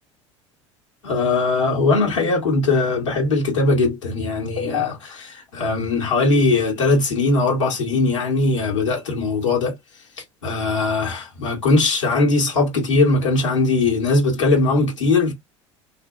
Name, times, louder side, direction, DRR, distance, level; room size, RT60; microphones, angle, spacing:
voice 1, 1.0-9.8 10.4-15.3, left 3 dB, 75° left, 1.4 m, -20 dB
2.7 x 2.2 x 3.0 m
figure-of-eight pair, 70°, 16 cm